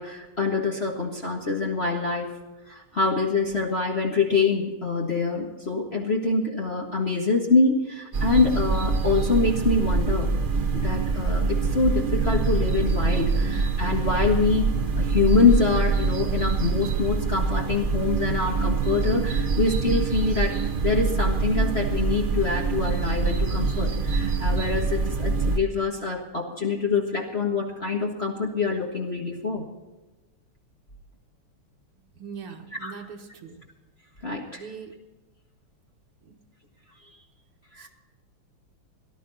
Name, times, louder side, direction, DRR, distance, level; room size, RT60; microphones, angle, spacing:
voice 1, 0.0-2.3 2.7-10.3 10.7-14.7 15.0-29.6 32.8-33.0 34.2-34.7 37.7-37.9, left 4 dB, 30° left, -1 dB, 1.7 m, -25 dB
sound 1, 8.1-25.6, right 4 dB, 40° right, 0.7 m, -25 dB
voice 2, 32.2-33.6 34.6-34.9 36.2-36.4 37.8-37.9, right 6 dB, 90° right, 1 dB, 2.4 m, -41 dB
18.5 x 12.5 x 4.2 m, 1.1 s
omnidirectional pair, 2.3 m